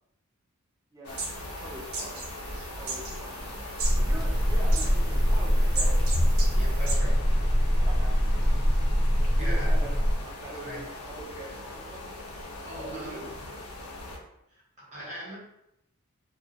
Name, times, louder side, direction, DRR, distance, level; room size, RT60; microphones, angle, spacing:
voice 1, 0.9-2.2 2.8-3.4 4.0-6.0 7.9-8.1 9.3-9.9 10.4-12.1 12.8-13.3, right 1 dB, 15° right, -4 dB, 0.3 m, -43 dB
sound 1, 1.0-14.2, left 2 dB, 85° left, 0.5 m, -40 dB
sound 2, 1.1-7.0, right 3 dB, 65° right, 0.5 m, -38 dB
sound 3, 3.8-10.1, equal, 80° right, 0.8 m, -23 dB
voice 2, 6.5-7.3 8.4-8.5 9.4-10.0 10.6-10.8 12.6-13.5 14.5-15.4, right 1 dB, 30° right, -7 dB, 0.9 m, -40 dB
2.2 x 2.1 x 2.6 m, 0.82 s
head